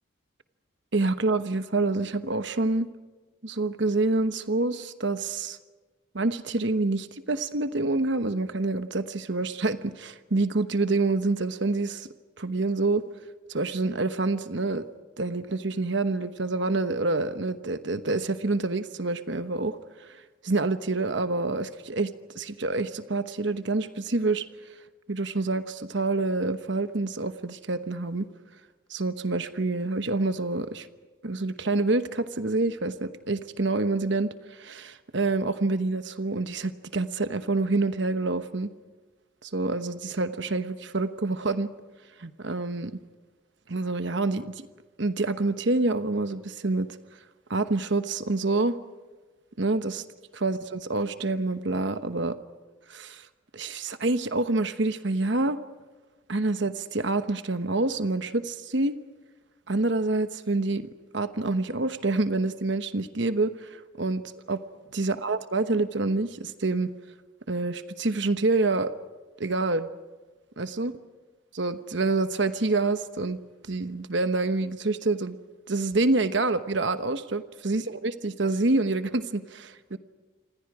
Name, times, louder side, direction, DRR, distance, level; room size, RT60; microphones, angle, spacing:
voice 1, 0.9-2.9 3.4-5.6 6.1-12.1 12.4-13.0 13.5-14.8 15.2-24.4 25.1-28.3 28.9-30.9 31.2-38.7 39.4-41.7 42.2-42.9 43.7-44.7 45.0-46.9 47.5-48.7 49.6-50.0 50.3-52.4 52.9-53.3 53.5-55.6 56.3-58.9 59.7-60.8 61.1-64.2 64.5-64.6 64.9-66.9 67.5-68.9 69.4-69.9 70.6-70.9 71.5-73.4 73.7-75.4 75.7-80.0, right 2 dB, 60° right, 10 dB, 1.1 m, -27 dB
28.0 x 25.5 x 4.9 m, 1.3 s
head